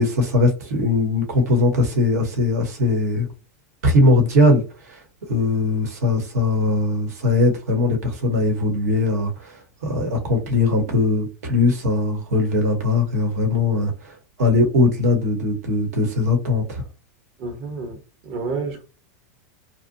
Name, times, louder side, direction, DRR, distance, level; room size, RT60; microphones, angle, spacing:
voice 1, 0.0-3.3 3.8-5.0 5.3-14.1 14.4-16.8, left 2 dB, 80° right, 1.0 m, -20 dB
voice 2, 17.4-18.0 18.2-18.8, right 4 dB, 50° right, 0.9 m, -29 dB
2.7 x 2.1 x 2.6 m
supercardioid pair, 125°, 8 cm